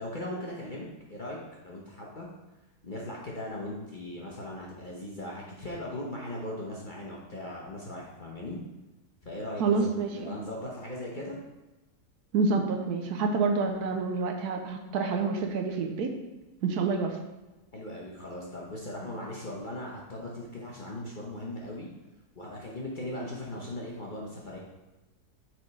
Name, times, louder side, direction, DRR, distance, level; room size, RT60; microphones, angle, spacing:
voice 1, 0.0-1.4 1.6-2.3 2.8-8.6 9.2-11.4 17.7-21.9 22.3-24.6, left 1 dB, 40° left, -3 dB, 0.8 m, -38 dB
voice 2, 9.6-10.3 12.3-16.1 16.6-17.2, right 4 dB, 75° right, 4 dB, 1.1 m, -28 dB
5.9 x 3.8 x 4.6 m, 1.1 s
omnidirectional pair, 1.8 m